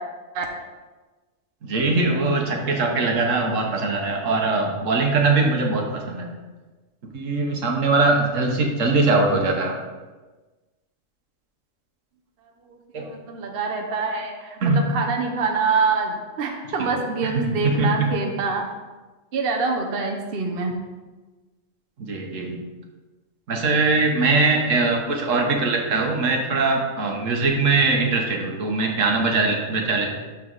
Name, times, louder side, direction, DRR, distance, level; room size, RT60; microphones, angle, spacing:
voice 1, 1.6-6.3 7.1-9.8 12.9-13.1 14.6-14.8 16.8-18.1 22.0-22.6 23.5-30.1, right 3 dB, 80° right, 2 dB, 1.5 m, -21 dB
voice 2, 13.0-18.6 19.3-20.8, right 4 dB, 50° right, 2 dB, 1.0 m, -25 dB
12.5 x 4.1 x 4.0 m, 1.3 s
omnidirectional pair, 1.3 m